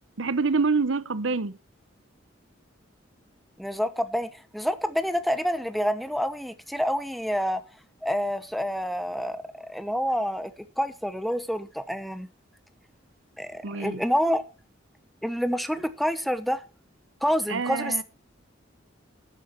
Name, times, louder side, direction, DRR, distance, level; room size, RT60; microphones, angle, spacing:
voice 1, 0.2-1.6 13.6-14.0 17.5-18.0, right 4 dB, 75° right, 0.9 m, -26 dB
voice 2, 3.6-7.6 8.0-10.5 10.8-12.3 13.4-14.4 15.2-16.6 17.2-18.0, equal, ahead, 1.0 m, -28 dB
12.0 x 9.7 x 4.5 m
head